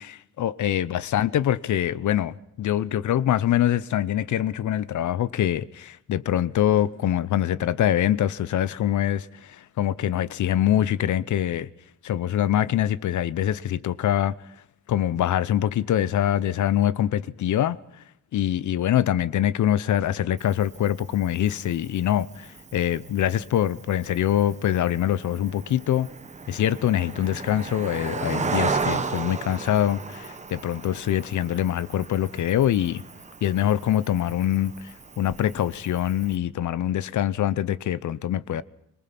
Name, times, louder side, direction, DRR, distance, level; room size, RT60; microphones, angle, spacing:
voice 1, 0.0-11.7 12.0-14.3 14.9-17.8 18.3-26.1 26.5-33.0 33.4-38.6, left 11 dB, 65° left, 0.8 m, -24 dB
Cricket, 20.4-36.4, right 4 dB, 20° right, 1.0 m, -35 dB
25.0 x 19.0 x 6.0 m
wide cardioid pair, 160°, 32 cm